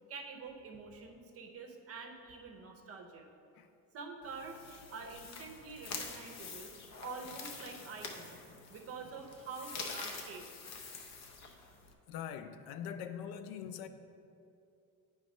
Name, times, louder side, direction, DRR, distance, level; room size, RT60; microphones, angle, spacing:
voice 1, 0.1-3.3 3.9-6.7 7.0-8.4 8.7-10.5, right 4 dB, 40° right, 0.7 m, -46 dB
sound 1, 4.2-11.9, left 4 dB, 50° left, 0.8 m, -46 dB
voice 2, 12.1-13.9, left 8 dB, 85° left, 0.5 m, -42 dB
9.0 x 3.3 x 5.3 m
cardioid pair, 155°, 35 cm